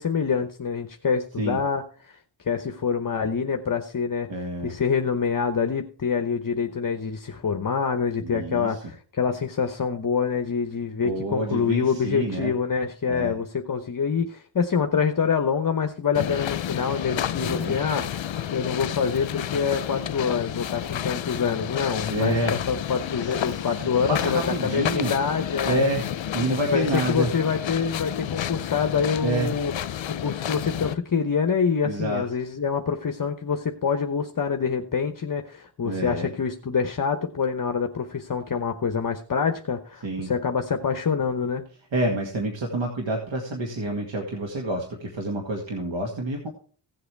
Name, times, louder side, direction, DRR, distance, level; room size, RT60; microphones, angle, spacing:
voice 1, 0.0-2.2 2.4-4.3 4.6-18.2 18.5-25.8 26.7-29.7 30.2-41.6, left 6 dB, 45° left, 6 dB, 1.0 m, -26 dB
voice 2, 4.3-4.7 8.2-8.8 11.0-12.5 13.1-13.3 17.4-17.8 22.1-22.6 23.2-23.7 24.1-25.1 25.6-26.1 26.3-27.3 29.2-29.5 31.8-32.3 35.8-36.3 40.0-40.3 41.9-46.5, right 1 dB, 80° right, 1 dB, 2.1 m, -28 dB
sound 1, 16.1-30.9, left 10 dB, 80° left, 0.7 m, -31 dB
16.5 x 7.8 x 3.4 m, 0.42 s
wide cardioid pair, 110°, 45 cm